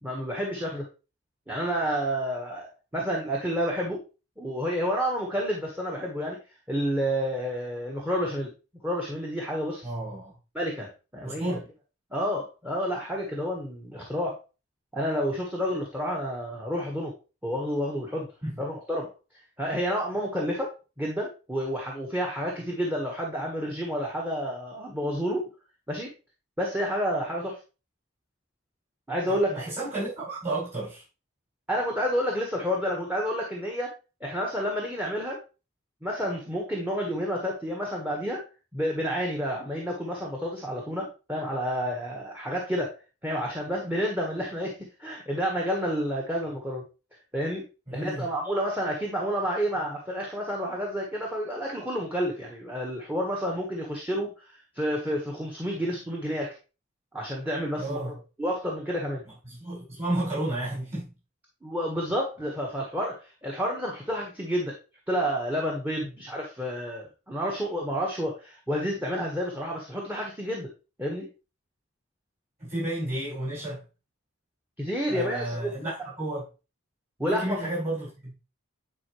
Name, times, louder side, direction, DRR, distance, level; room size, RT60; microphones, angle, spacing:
voice 1, 0.0-0.9 1.5-2.7 2.9-4.0 4.4-6.4 6.7-8.5 8.8-9.9 10.5-11.6 12.1-14.4 14.9-17.1 17.4-18.3 18.6-19.1 19.6-25.4 25.9-26.1 26.6-27.6 29.1-29.6 31.7-33.9 34.2-35.4 36.0-38.4 38.7-42.9 43.2-46.8 47.3-47.6 47.9-54.3 54.7-56.5 57.1-58.1 58.4-59.2 61.6-64.8 65.1-70.7 71.0-71.3 74.8-75.7 77.2-77.7, equal, 10° right, 1.3 m, -30 dB
voice 2, 9.8-10.3 11.2-11.6 18.4-18.5 29.3-31.0 47.9-48.2 57.8-58.1 59.4-61.1 72.6-73.8 75.1-76.5 77.3-78.3, right 1 dB, 30° right, 4.7 m, -32 dB
9.7 x 4.5 x 3.1 m
head